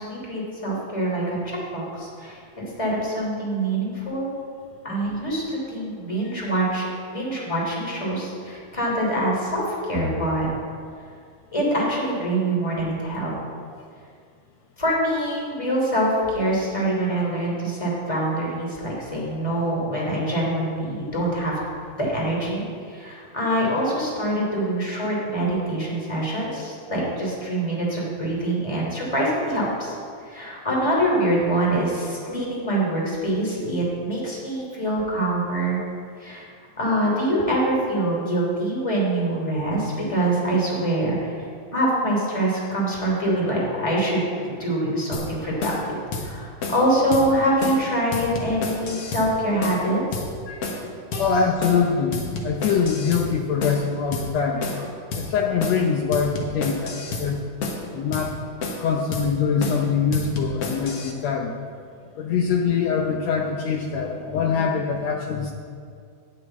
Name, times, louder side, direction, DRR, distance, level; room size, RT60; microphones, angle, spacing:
voice 1, 0.0-4.3 4.8-10.5 11.5-13.3 14.8-21.6 22.0-30.0 30.2-35.8 36.2-36.5 36.8-41.3 41.7-50.2 51.1-51.3, right 1 dB, 10° left, -4 dB, 2.6 m, -25 dB
sound 1, 45.1-45.3 45.6-45.8 46.1-46.3 46.6-46.8 47.1-47.3 47.6-47.8 48.1-49.3 49.6-49.8 50.1-50.3 50.6-50.8 51.1-51.3 51.6-51.8 52.1-53.3 53.6-53.8 54.1-54.3 54.6-54.8 55.1-55.3 55.6-55.8 56.1-57.3 57.6-57.8 58.1-58.3 58.6-58.9 59.1-59.3 59.6-59.8 60.1-61.1, left 3 dB, 55° left, 1.9 m, -30 dB
voice 2, 51.2-54.6 55.1-56.9 57.2-57.4 57.9-58.3 58.8-61.5 62.2-65.5, left 6 dB, 75° left, 1 dB, 1.6 m, -23 dB
11.0 x 6.0 x 8.9 m, 2.2 s
omnidirectional pair, 3.8 m